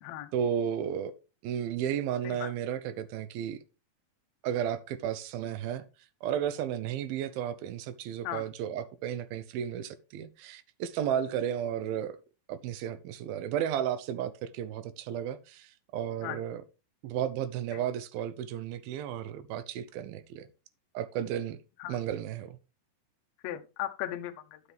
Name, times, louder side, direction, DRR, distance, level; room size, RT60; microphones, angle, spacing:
voice 1, 0.3-1.1 1.4-3.6 4.4-5.9 6.2-12.2 12.5-16.6 17.0-20.5 20.9-21.6 21.9-22.6, right 9 dB, 80° right, 2.6 m, -33 dB
voice 2, 23.4-24.6, left 12 dB, 90° left, 1.4 m, -37 dB
11.0 x 7.3 x 3.4 m
omnidirectional pair, 4.2 m